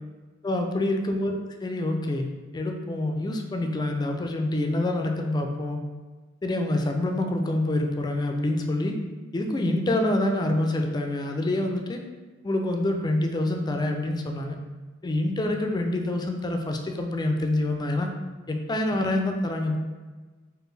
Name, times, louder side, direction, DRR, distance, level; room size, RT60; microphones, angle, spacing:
voice 1, 0.4-2.3 2.5-5.8 6.4-9.0 9.3-12.0 12.4-14.6 15.0-18.1 18.5-19.8, left 1 dB, 20° left, 4 dB, 0.3 m, -26 dB
4.4 x 2.5 x 3.2 m, 1.3 s
head